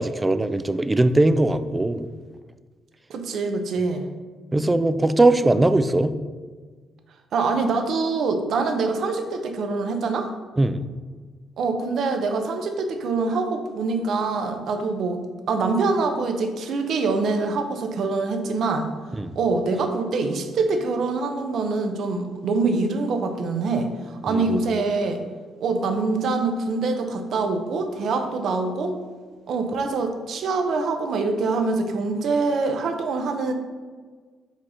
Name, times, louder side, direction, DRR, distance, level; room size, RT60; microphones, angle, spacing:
voice 1, 0.0-2.1 4.5-6.1 10.6-10.8 19.1-19.4 24.3-24.6, right 2 dB, 15° right, 12 dB, 0.4 m, -20 dB
voice 2, 3.1-4.0 7.3-10.3 11.6-15.2 15.5-18.9 19.3-25.2 25.6-28.9 29.5-33.5, right 3 dB, 65° right, 6 dB, 0.8 m, -24 dB
5.2 x 4.1 x 4.9 m, 1.5 s
cardioid pair, 90°, 0 cm